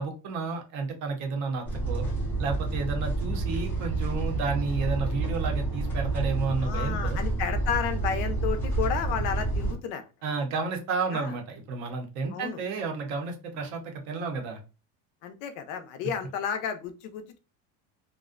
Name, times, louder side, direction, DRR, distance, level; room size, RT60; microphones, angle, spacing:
voice 1, 0.0-2.0 2.4-7.2 10.2-14.6, right 4 dB, 45° right, 4 dB, 0.6 m, -31 dB
sound 1, 1.6-9.7, right 3 dB, 5° left, 0.4 m, -29 dB
voice 2, 6.6-10.1 11.1-11.3 12.3-12.6 15.2-17.4, left 8 dB, 65° left, 9 dB, 0.5 m, -32 dB
2.5 x 2.1 x 2.4 m, 0.31 s
cardioid pair, 175°, 40 cm